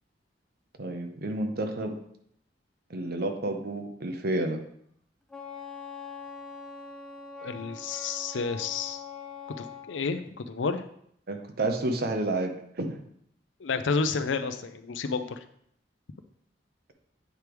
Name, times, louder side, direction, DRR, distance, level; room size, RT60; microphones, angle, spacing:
voice 1, 0.8-2.0 2.9-4.6 11.3-13.0, right 2 dB, 55° right, 5 dB, 0.8 m, -30 dB
Wind instrument woodwind instrument, 5.3-9.9, left 5 dB, 5° left, 0.7 m, -42 dB
voice 2, 7.4-9.0 9.5-10.8 13.6-15.4, left 4 dB, 90° left, 10 dB, 0.5 m, -30 dB
8.1 x 3.4 x 4.6 m, 0.69 s
head